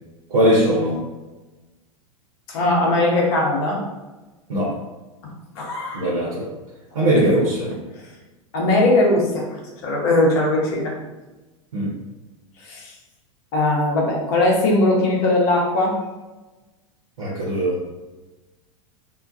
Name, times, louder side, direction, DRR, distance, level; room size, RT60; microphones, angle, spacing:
voice 1, 0.3-1.0 4.5-4.7 5.9-6.5 6.9-7.7 11.7-11.9 17.2-17.8, right 1 dB, 70° right, -8 dB, 0.8 m, -20 dB
voice 2, 2.5-3.8 5.6-6.1 7.1-7.2 8.5-10.9 12.6-12.9 13.5-16.0, left 2 dB, 45° left, -2 dB, 0.7 m, -19 dB
2.2 x 2.2 x 2.5 m, 1.1 s
figure-of-eight pair, 90°, 18 cm